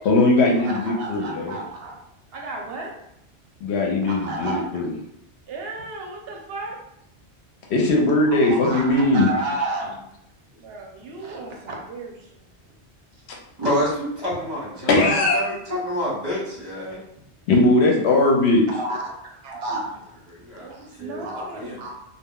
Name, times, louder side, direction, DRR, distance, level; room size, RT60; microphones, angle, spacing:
voice 1, 0.1-1.5 3.6-4.9 7.7-9.3 14.0-14.1 14.9-15.4 17.5-18.6, left 2 dB, 75° left, 0 dB, 0.9 m, -19 dB
voice 2, 0.6-2.0 2.3-2.9 4.0-4.8 5.5-6.8 8.3-10.0 10.5-12.4 14.3-14.4 18.7-19.1 19.4-20.2 20.5-21.9, right 2 dB, 70° right, 0 dB, 0.8 m, -32 dB
voice 3, 13.6-17.0 20.3-21.8, equal, 40° right, -6 dB, 1.0 m, -28 dB
2.2 x 2.1 x 3.6 m, 0.78 s
omnidirectional pair, 1.1 m